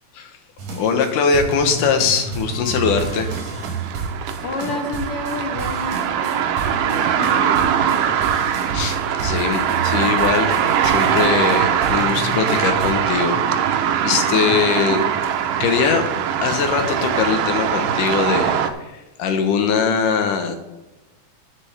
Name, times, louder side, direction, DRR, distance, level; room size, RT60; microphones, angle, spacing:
sound 1, 0.6-12.9, right 4 dB, 60° right, 3.1 m, -31 dB
voice 1, 0.8-3.3 8.7-13.4 13.7-15.1 15.6-16.1 16.4-20.6, left 6 dB, 85° left, 6 dB, 2.6 m, -21 dB
Wind instrument woodwind instrument, 2.4-8.3, right 4 dB, 25° left, 2.7 m, -47 dB
sound 2, 2.9-18.7, right 9 dB, 85° right, 2.3 m, -22 dB
voice 2, 4.4-8.1, left 3 dB, 60° left, 4 dB, 1.7 m, -31 dB
10.5 x 10.0 x 3.4 m, 1.1 s
omnidirectional pair, 3.6 m